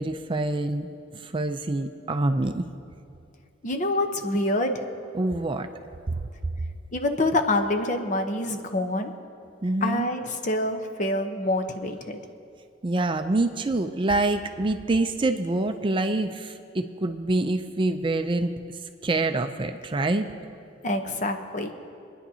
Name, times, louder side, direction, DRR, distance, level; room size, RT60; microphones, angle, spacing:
voice 1, 0.0-2.7 5.1-5.7 6.1-6.2 9.6-10.1 12.8-18.5 19.0-20.3, right 2 dB, 25° right, 8 dB, 0.4 m, -26 dB
voice 2, 3.6-4.8 6.9-9.1 9.8-12.2 20.8-21.7, left 1 dB, 40° left, 5 dB, 0.9 m, -26 dB
26.0 x 10.0 x 2.8 m, 2.5 s
head